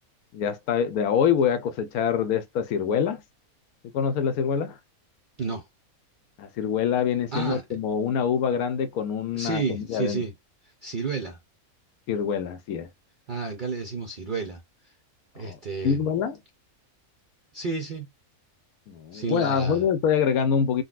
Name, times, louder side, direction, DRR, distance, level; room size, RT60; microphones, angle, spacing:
voice 1, 0.3-3.2 3.9-4.8 6.4-10.2 12.1-12.9 15.4-15.6 15.8-16.4 18.9-20.8, left 7 dB, 80° left, 1.1 m, -25 dB
voice 2, 7.3-7.6 9.3-10.3 10.8-11.4 13.3-14.6 15.4-16.0 17.5-18.1 19.1-19.9, right 4 dB, 60° right, 0.5 m, -31 dB
3.8 x 2.3 x 2.3 m
omnidirectional pair, 1.5 m